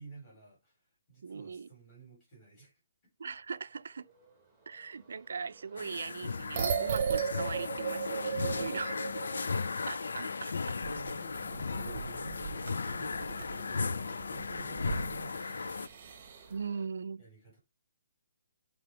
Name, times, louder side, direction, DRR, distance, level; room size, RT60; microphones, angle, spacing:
voice 1, 0.0-2.8 10.6-16.6 17.2-17.6, right 4 dB, 15° left, 4.5 m, -53 dB
voice 2, 1.2-1.7 3.2-4.1 4.7-8.9 9.9-10.8 16.5-17.2, right 5 dB, 65° right, 0.5 m, -40 dB
sound 1, 3.3-16.9, right 4 dB, ahead, 1.5 m, -60 dB
sound 2, 5.8-15.9, left 4 dB, 85° left, 0.3 m, -36 dB
sound 3, 6.3-9.8 10.1-10.2 10.8-16.5, right 7 dB, 30° right, 0.9 m, -37 dB
7.6 x 3.5 x 5.0 m
hypercardioid pair, 175°, 0 cm